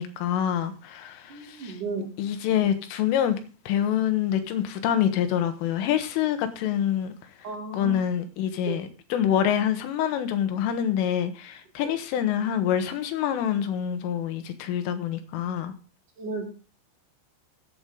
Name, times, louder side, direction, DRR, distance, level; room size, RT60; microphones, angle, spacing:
voice 1, 0.0-1.8 2.2-3.4 3.7-7.1 7.7-15.7, left 10 dB, 80° left, 9 dB, 3.9 m, -26 dB
voice 2, 1.3-2.1 7.4-7.9 8.7-8.8 11.8-12.0 16.2-16.5, right 4 dB, 45° right, 1 dB, 3.6 m, -34 dB
15.0 x 8.3 x 3.8 m, 0.36 s
omnidirectional pair, 5.7 m